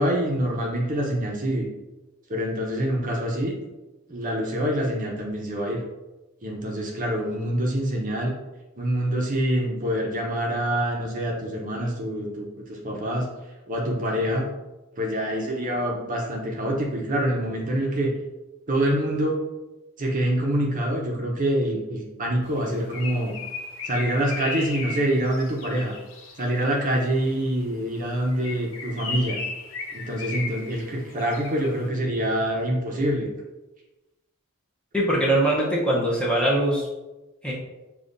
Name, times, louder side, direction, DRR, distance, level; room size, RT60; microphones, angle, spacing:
voice 1, 0.0-1.7 2.3-3.6 4.1-5.8 6.4-8.3 8.8-13.3 13.7-14.4 15.0-18.1 18.7-19.4 20.0-23.3 23.8-26.0 26.4-29.4 29.9-33.3, right 1 dB, 40° right, -1 dB, 0.7 m, -25 dB
Bird, 22.5-26.6 28.2-31.8, left 4 dB, 65° left, 0.6 m, -36 dB
voice 2, 34.9-36.9 37.4-37.5, right 1 dB, 5° left, -5 dB, 0.8 m, -22 dB
6.9 x 2.4 x 2.6 m, 1.1 s
head